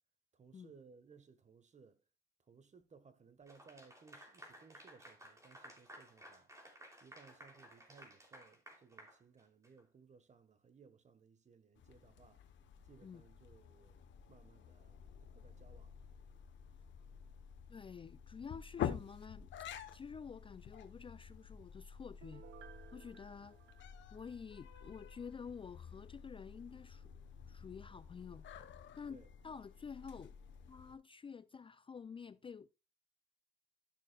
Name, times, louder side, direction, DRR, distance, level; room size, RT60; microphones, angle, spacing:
voice 1, 0.3-2.0 2.5-6.5 7.0-12.5 12.9-16.0 29.1-29.3, right 5 dB, 35° right, 1.3 m, -62 dB
Clapping / Applause, 3.5-9.8, equal, 15° right, 2.9 m, -57 dB
sound 1, 11.8-31.0, left 9 dB, 70° left, 1.0 m, -49 dB
voice 2, 17.7-19.5 19.9-22.4 22.9-23.6 24.1-27.1 27.5-28.5 29.0-30.3 30.7-32.7, left 6 dB, 25° left, 0.4 m, -50 dB
Piano, 22.2-24.9 25.3-25.4, right 10 dB, 70° right, 0.7 m, -59 dB
12.0 x 6.5 x 2.3 m
cardioid pair, 90°, 20 cm